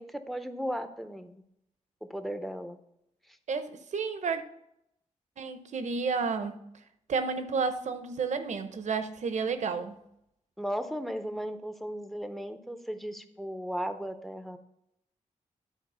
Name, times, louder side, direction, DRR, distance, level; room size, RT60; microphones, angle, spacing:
voice 1, 0.0-1.4 2.1-2.8 10.6-14.6, equal, ahead, 0.6 m, -36 dB
voice 2, 3.5-4.4 5.4-6.6 7.1-10.0, right 5 dB, 70° right, 0.8 m, -31 dB
10.0 x 4.4 x 5.5 m
wide cardioid pair, 120°, 13 cm